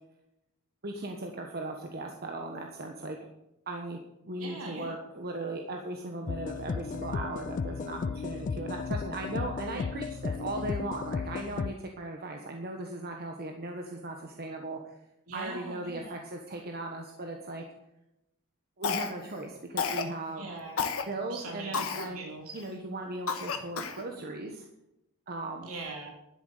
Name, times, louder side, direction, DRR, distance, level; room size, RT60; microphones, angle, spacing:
voice 1, 0.8-3.3 3.7-14.9 15.3-17.6 18.8-20.6 21.1-22.2 22.5-24.6 25.3-25.7, right 2 dB, 45° right, 2 dB, 1.3 m, -38 dB
voice 2, 4.4-4.9 9.7-9.8 15.3-16.2 20.3-21.8 22.1-22.5 25.6-26.1, right 3 dB, 75° right, 0 dB, 3.2 m, -42 dB
sound 1, 6.3-11.7, left 5 dB, 35° left, 0.3 m, -34 dB
Cough, 18.8-19.4 19.8-20.1 20.8-21.0 21.7-22.1 22.6-22.7 23.3-24.0, left 5 dB, 70° left, 1.4 m, -31 dB
12.0 x 7.7 x 6.7 m, 0.86 s
head